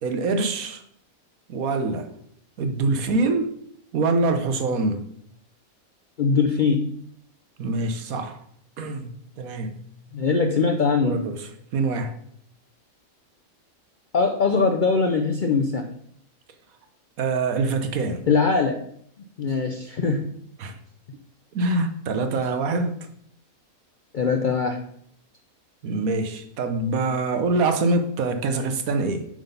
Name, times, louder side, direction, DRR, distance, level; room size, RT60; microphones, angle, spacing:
voice 1, 0.0-0.8 1.5-2.1 2.6-3.5 3.9-5.0 7.6-8.4 8.8-9.8 11.0-12.1 17.2-18.3 20.6-20.8 21.5-23.0 25.8-29.3, right 3 dB, 75° right, 8 dB, 1.3 m, -25 dB
voice 2, 6.2-6.9 10.1-11.2 14.1-15.9 18.3-18.8 19.4-20.3 24.1-24.8, left 4 dB, 60° left, 4 dB, 0.5 m, -21 dB
7.3 x 3.9 x 5.4 m, 0.67 s
omnidirectional pair, 1.5 m